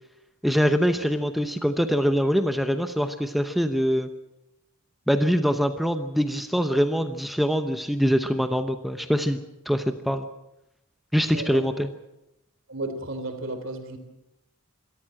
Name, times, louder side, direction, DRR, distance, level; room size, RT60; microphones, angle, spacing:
voice 1, 0.4-4.1 5.1-9.4 9.7-10.3 11.1-11.9, equal, ahead, 8 dB, 0.8 m, -23 dB
voice 2, 11.3-11.7 12.7-14.0, right 2 dB, 60° right, 7 dB, 3.3 m, -33 dB
26.0 x 13.5 x 7.7 m, 0.90 s
head